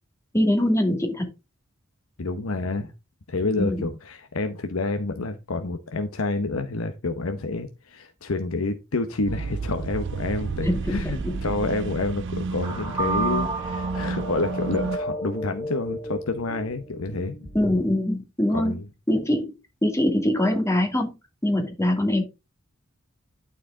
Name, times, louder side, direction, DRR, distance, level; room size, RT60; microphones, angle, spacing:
voice 1, 0.3-1.3 3.6-3.8 10.6-11.4 17.5-18.7 19.1-19.5 19.8-21.1 21.4-22.2, left 1 dB, 15° left, 2.4 m, -23 dB
voice 2, 2.2-2.9 3.3-17.3 18.5-18.9, left 3 dB, 90° left, 0.9 m, -28 dB
sound 1, 9.3-15.0, right 4 dB, 60° right, 0.5 m, -31 dB
sound 2, 12.6-17.9, right 2 dB, 10° right, 6.4 m, -32 dB
11.5 x 4.8 x 3.8 m
head